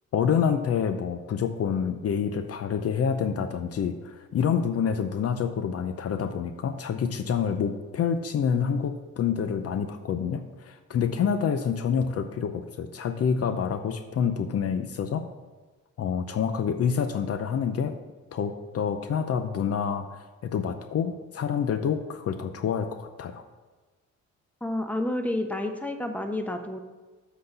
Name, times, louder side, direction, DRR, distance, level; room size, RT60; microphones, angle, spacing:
voice 1, 0.1-15.2 16.0-17.9 18.3-23.4, left 7 dB, 50° left, 9 dB, 0.6 m, -27 dB
voice 2, 24.6-26.8, left 1 dB, 5° left, 6 dB, 0.9 m, -30 dB
7.5 x 4.1 x 6.8 m, 1.3 s
cardioid pair, 90°, 30 cm